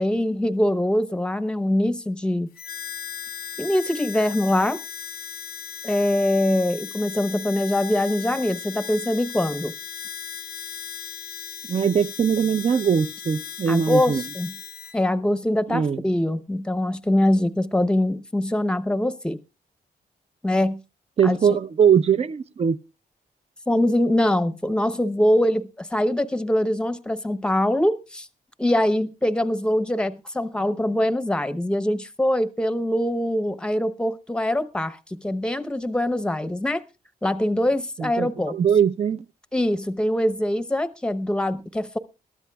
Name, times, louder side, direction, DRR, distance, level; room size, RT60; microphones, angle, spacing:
voice 1, 0.0-2.5 3.6-4.8 5.8-9.7 13.7-14.5 14.9-19.4 20.4-20.8 21.2-21.6 23.7-28.3 28.6-36.8 37.2-38.6 39.5-42.0, left 1 dB, 5° left, 0.8 m, -23 dB
Harmonica, 2.5-15.0, left 8 dB, 70° left, 0.6 m, -37 dB
voice 2, 11.7-14.2 15.7-16.0 21.2-22.8 38.0-39.2, right 7 dB, 40° right, 0.6 m, -21 dB
21.5 x 13.5 x 2.3 m
wide cardioid pair, 135°, 16 cm